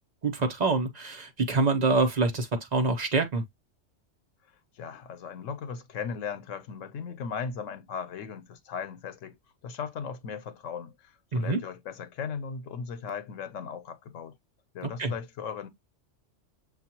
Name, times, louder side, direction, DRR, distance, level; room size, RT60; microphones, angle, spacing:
voice 1, 0.2-3.4 11.3-11.6 15.0-15.1, right 3 dB, 40° right, 0.9 m, -26 dB
voice 2, 4.8-9.4 9.6-14.4 14.7-15.7, left 6 dB, 90° left, 1.1 m, -37 dB
6.5 x 2.4 x 2.9 m
omnidirectional pair, 1.3 m